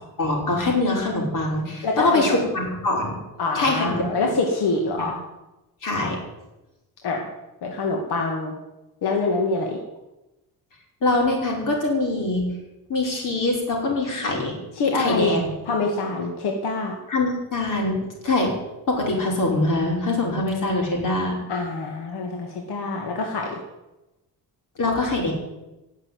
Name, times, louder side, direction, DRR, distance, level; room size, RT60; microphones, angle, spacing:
voice 1, 0.2-3.2 3.5-4.1 5.0-5.1 5.8-6.2 11.0-12.5 12.9-14.5 14.9-15.5 17.1-18.0 18.2-18.5 18.9-21.4 24.8-25.3, left 2 dB, 55° left, -1 dB, 5.7 m, -23 dB
voice 2, 1.8-2.4 3.4-5.2 7.0-7.3 7.6-8.5 9.0-9.8 14.8-15.4 15.7-16.9 21.5-23.6, left 3 dB, 85° left, 1 dB, 2.5 m, -25 dB
18.5 x 7.4 x 9.6 m, 1.0 s
cardioid pair, 160°, 38 cm